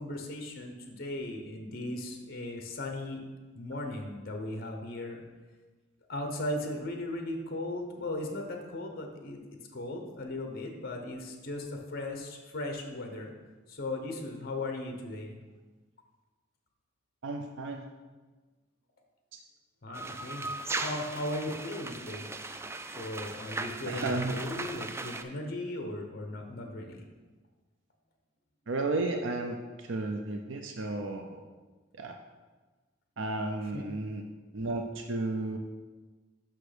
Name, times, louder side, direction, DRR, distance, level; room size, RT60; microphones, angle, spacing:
voice 1, 0.0-3.2 3.5-5.2 6.1-9.4 9.7-13.3 13.7-15.4 19.8-22.3 22.9-27.0 33.7-33.8, left 1 dB, 50° left, 4 dB, 0.9 m, -37 dB
voice 2, 17.2-17.9 23.9-24.4 28.7-31.4 32.0-32.1 33.2-34.2 34.5-35.6, right 2 dB, 70° right, 4 dB, 0.6 m, -33 dB
sound 1, 19.9-25.2, right 3 dB, 15° right, 0.3 m, -38 dB
6.2 x 5.9 x 5.0 m, 1.3 s
head